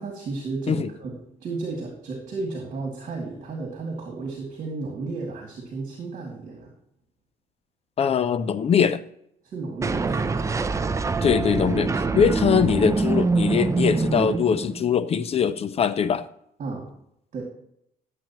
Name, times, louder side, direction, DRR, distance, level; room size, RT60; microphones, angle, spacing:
voice 1, 0.0-6.7 9.4-10.4 16.6-16.9 17.3-17.4, right 3 dB, 45° right, 0 dB, 2.3 m, -33 dB
voice 2, 8.0-9.0 11.2-16.3, left 7 dB, 35° left, 14 dB, 0.5 m, -22 dB
sound 1, 9.8-15.0, right 4 dB, 20° right, 0.5 m, -24 dB
11.5 x 7.7 x 3.0 m, 0.73 s
cardioid pair, 110°, 17 cm